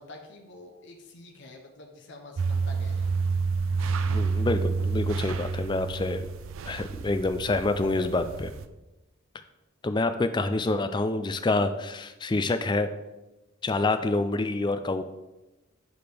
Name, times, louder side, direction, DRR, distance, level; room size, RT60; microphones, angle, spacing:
voice 1, 0.0-3.1, left 2 dB, 55° left, 2 dB, 0.8 m, -47 dB
sound 1, 2.4-8.7, right 4 dB, 70° right, 0.4 m, -29 dB
voice 2, 4.1-6.2 6.7-8.5 9.8-12.9 13.6-15.0, left 2 dB, 20° left, 9 dB, 0.3 m, -27 dB
7.9 x 4.8 x 3.4 m, 1.0 s
head